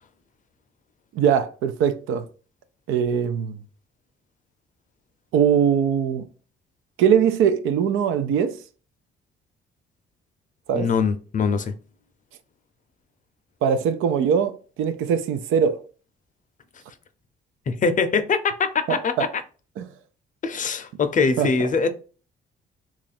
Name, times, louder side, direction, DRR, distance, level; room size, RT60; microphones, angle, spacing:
voice 1, 1.1-2.3 2.9-3.6 5.3-6.3 7.0-8.6 10.7-10.9 13.6-14.5 14.8-15.8 18.9-19.3 19.8-19.9 21.4-21.7, right 7 dB, 85° right, 0.5 m, -21 dB
voice 2, 10.7-11.7 17.7-19.4 20.4-21.9, left 5 dB, 40° left, 0.5 m, -23 dB
3.0 x 2.4 x 4.2 m
cardioid pair, 90°, 20 cm